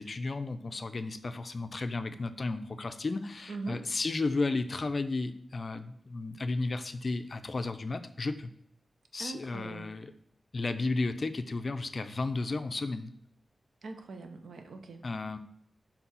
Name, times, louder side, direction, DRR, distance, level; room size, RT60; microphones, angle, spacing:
voice 1, 0.0-8.5 9.1-10.1 10.5-13.1 15.0-15.4, left 3 dB, 45° left, 10 dB, 0.4 m, -33 dB
voice 2, 3.5-3.8 9.2-9.9 13.8-15.0, right 3 dB, 85° right, 6 dB, 0.7 m, -41 dB
4.6 x 3.7 x 5.5 m, 0.71 s
wide cardioid pair, 100°, 0 cm